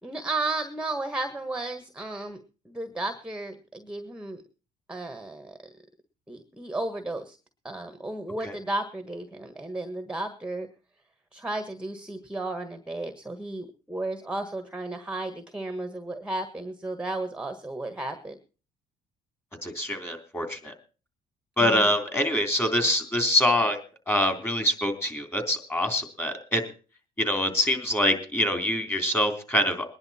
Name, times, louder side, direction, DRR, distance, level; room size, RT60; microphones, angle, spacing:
voice 1, 0.0-2.4 2.6-4.4 4.9-5.6 6.3-7.4 7.6-10.7 11.3-18.4 21.6-21.9, right 2 dB, 5° right, 7 dB, 1.5 m, -33 dB
voice 2, 19.6-20.7 21.6-23.8 24.1-26.7 27.2-29.9, left 1 dB, 15° left, 6 dB, 3.4 m, -25 dB
21.0 x 10.5 x 4.3 m, 0.37 s
cardioid pair, 110°, 17 cm